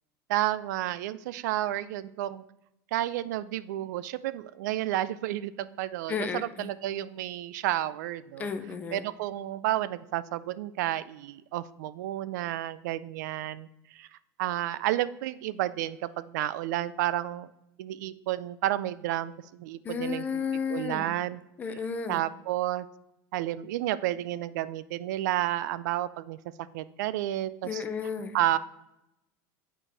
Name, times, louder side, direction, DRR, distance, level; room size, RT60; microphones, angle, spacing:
voice 1, 0.3-2.4 2.9-6.3 6.6-8.5 8.9-14.1 14.4-17.5 17.8-20.4 20.7-21.4 22.1-22.9 23.3-26.4 26.7-27.8 28.3-28.6, right 14 dB, 85° right, 16 dB, 0.4 m, -31 dB
voice 2, 6.1-6.7 8.4-9.0 19.8-21.1 21.6-22.2 27.6-28.4, left 6 dB, 15° left, 8 dB, 0.4 m, -33 dB
8.5 x 4.4 x 3.3 m, 0.88 s
supercardioid pair, 170°, 9 cm